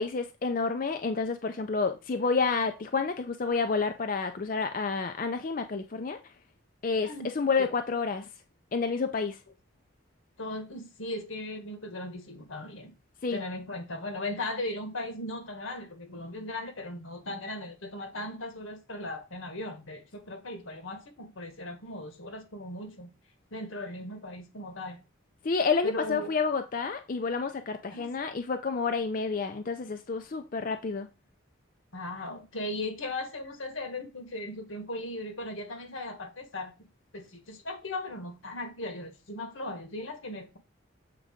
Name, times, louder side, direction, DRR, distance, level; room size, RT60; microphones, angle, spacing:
voice 1, 0.0-6.2 6.8-7.1 7.4-8.3 8.7-9.4 13.2-13.4 25.4-31.1, left 4 dB, 40° left, 0.4 m, -29 dB
voice 2, 10.4-12.9 13.3-23.1 23.5-25.0 25.8-26.3 27.9-28.1 31.9-40.6, left 1 dB, 80° left, 1.5 m, -38 dB
7.5 x 3.8 x 5.0 m
head